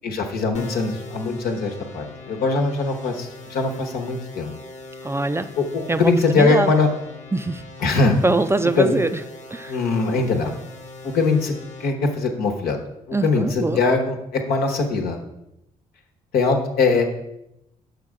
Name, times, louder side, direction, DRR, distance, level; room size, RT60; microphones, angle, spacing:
voice 1, 0.0-4.5 5.6-6.9 7.8-8.1 8.8-8.9 9.7-10.5 11.0-11.5 11.8-12.8 13.1-15.2 16.3-17.0, left 3 dB, 80° left, 3 dB, 1.2 m, -21 dB
sound 1, 0.5-11.9, left 3 dB, 45° left, 1.2 m, -40 dB
voice 2, 5.0-5.5 5.9-6.7 7.3-7.6 8.2-9.2 9.5-9.8 13.1-13.8, right 2 dB, 15° right, 11 dB, 0.4 m, -23 dB
6.7 x 5.3 x 4.8 m, 0.85 s
supercardioid pair, 65°, 16 cm